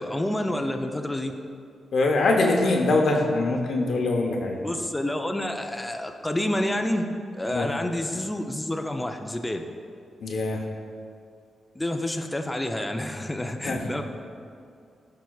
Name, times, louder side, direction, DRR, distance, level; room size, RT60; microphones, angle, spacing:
voice 1, 0.0-1.3 4.6-7.1 7.3-9.6 11.8-14.0, left 1 dB, 15° left, 4 dB, 0.5 m, -28 dB
voice 2, 1.9-4.6 7.5-7.7 10.2-10.6 13.6-13.9, left 2 dB, 70° left, 1 dB, 0.8 m, -23 dB
12.5 x 4.7 x 2.3 m, 2.4 s
supercardioid pair, 55°, 0 cm